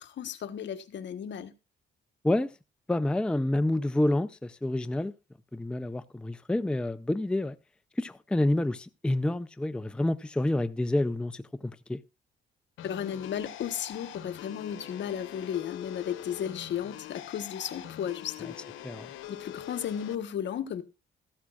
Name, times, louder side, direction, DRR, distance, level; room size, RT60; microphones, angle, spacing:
voice 1, 0.0-1.5 12.8-18.6 19.3-20.8, left 9 dB, 65° left, 1.2 m, -34 dB
voice 2, 2.9-5.1 5.5-7.6 8.0-12.0 18.8-19.1, left 1 dB, 5° left, 0.5 m, -28 dB
sound 1, 12.8-20.1, left 12 dB, 90° left, 1.0 m, -44 dB
14.0 x 13.0 x 2.4 m
cardioid pair, 90°, 20 cm